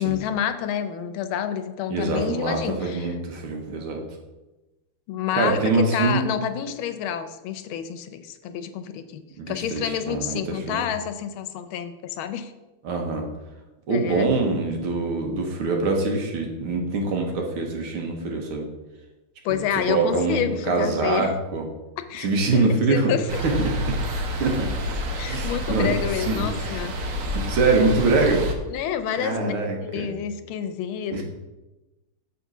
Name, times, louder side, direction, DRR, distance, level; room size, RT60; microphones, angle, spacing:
voice 1, 0.0-3.1 5.1-12.5 13.9-14.3 19.4-21.3 22.1-22.3 22.5-23.4 25.2-26.9 28.7-31.2, left 9 dB, 80° left, 9 dB, 1.4 m, -29 dB
voice 2, 1.9-4.0 5.3-6.3 9.4-10.4 10.7-10.8 12.8-13.3 13.9-18.7 19.9-21.7 22.2-23.1 23.6-23.7 24.4-24.9 25.3-26.8 27.3-28.4 29.2-30.1 31.1-31.2, right 3 dB, 80° right, 2 dB, 2.0 m, -24 dB
sound 1, 23.3-28.5, left 1 dB, 65° right, 0.8 m, -29 dB
6.9 x 3.7 x 6.0 m, 1.1 s
omnidirectional pair, 2.3 m